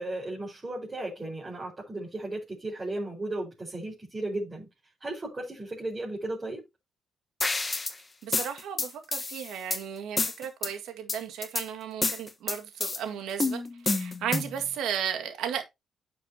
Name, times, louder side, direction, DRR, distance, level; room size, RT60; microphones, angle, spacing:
voice 1, 0.0-4.7 5.0-6.6, right 2 dB, 25° right, 5.0 m, -35 dB
sound 1, 7.4-8.0 8.3-9.8 10.2-10.7 11.1-11.7 12.0-13.0 13.4-14.6, left 3 dB, 25° left, 1.3 m, -29 dB
voice 2, 8.2-13.6 13.9-15.6, right 8 dB, 80° right, 1.9 m, -34 dB
10.0 x 6.7 x 2.9 m
cardioid pair, 90°, 0 cm